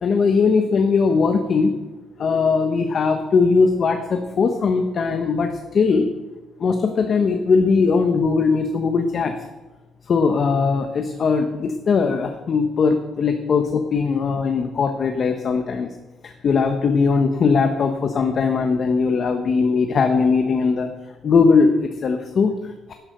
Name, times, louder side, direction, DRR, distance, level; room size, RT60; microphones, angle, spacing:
voice 1, 0.0-1.8 2.2-6.1 6.6-9.3 10.1-15.9 16.2-20.9 21.2-22.9, left 5 dB, 40° left, 5 dB, 1.0 m, -19 dB
11.5 x 9.8 x 6.7 m, 1.1 s
cardioid pair, 140°, 0 cm